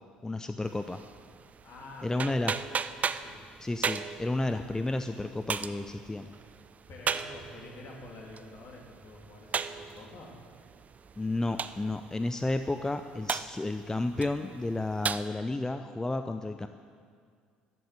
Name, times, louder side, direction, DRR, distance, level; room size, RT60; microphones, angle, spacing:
voice 1, 0.2-1.0 2.0-2.5 3.6-6.3 11.2-16.7, left 2 dB, 15° left, 9 dB, 0.6 m, -32 dB
sound 1, 0.6-15.2, right 6 dB, 35° right, 0.5 m, -38 dB
voice 2, 1.6-2.3 3.2-3.4 6.9-10.3, left 2 dB, 55° left, -1 dB, 3.1 m, -47 dB
13.5 x 7.9 x 8.7 m, 2.1 s
figure-of-eight pair, 55°, 4 cm